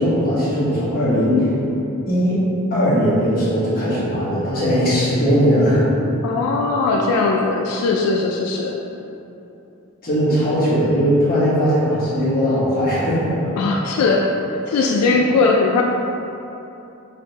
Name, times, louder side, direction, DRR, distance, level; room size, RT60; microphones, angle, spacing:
voice 1, 0.0-1.6 2.1-2.4 2.7-5.9 10.0-13.5, equal, 40° left, -9 dB, 1.1 m, -19 dB
voice 2, 6.2-8.8 13.6-14.3 14.7-15.8, left 3 dB, 90° left, 3 dB, 0.3 m, -19 dB
4.8 x 2.5 x 2.9 m, 2.9 s
head